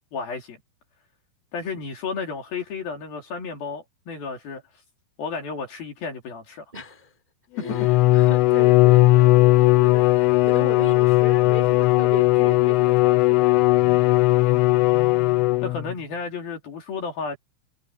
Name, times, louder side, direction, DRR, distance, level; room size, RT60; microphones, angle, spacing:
voice 1, 0.1-0.6 1.5-4.6 5.2-6.6 7.6-7.9 15.6-17.4, left 5 dB, 50° left, 4.6 m, -32 dB
voice 2, 6.7-7.1 7.5-14.0, left 1 dB, 10° right, 3.1 m, -36 dB
Bowed string instrument, 7.6-15.9, left 18 dB, 85° left, 3.3 m, -18 dB
omnidirectional pair, 5.9 m